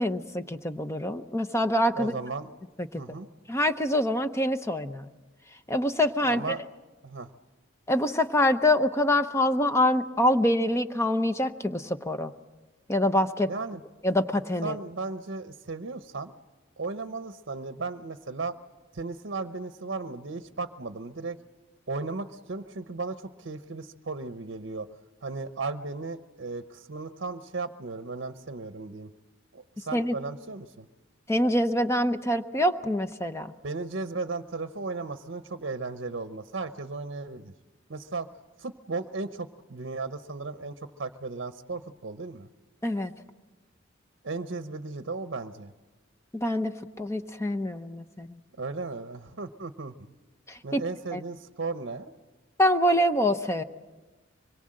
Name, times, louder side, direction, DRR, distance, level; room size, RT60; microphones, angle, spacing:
voice 1, 0.0-2.1 2.9-3.0 3.5-5.1 5.7-6.4 7.9-12.3 12.9-13.5 14.0-14.8 29.9-30.2 31.3-33.5 42.8-43.1 46.3-46.7 47.0-48.4 50.5-50.8 51.1-51.2 52.6-53.6, left 1 dB, 15° left, 9 dB, 0.7 m, -25 dB
voice 2, 1.9-2.5 3.0-3.3 6.2-6.6 7.0-7.3 13.5-13.8 14.6-16.4 16.8-18.5 18.9-21.4 21.9-24.9 25.2-29.1 29.5-30.9 33.6-37.5 37.9-38.3 38.6-42.5 44.2-45.7 48.6-49.9 50.6-52.1, right 3 dB, 60° right, 9 dB, 0.8 m, -35 dB
25.0 x 22.0 x 7.6 m, 1.2 s
head